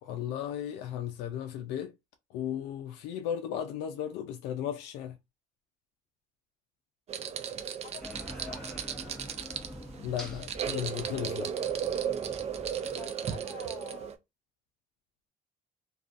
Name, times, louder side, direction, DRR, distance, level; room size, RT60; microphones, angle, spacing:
voice 1, 0.0-1.9 2.3-5.2 10.0-11.5, left 10 dB, 85° left, 0.4 m, -35 dB
sound 1, 7.1-14.1, right 8 dB, 40° right, 0.4 m, -35 dB
voice 2, 7.8-8.6 13.0-14.2, left 5 dB, 40° left, 1.0 m, -49 dB
sound 2, 8.0-13.1, equal, 5° left, 0.9 m, -45 dB
2.4 x 2.3 x 2.4 m
cardioid pair, 110°, 17 cm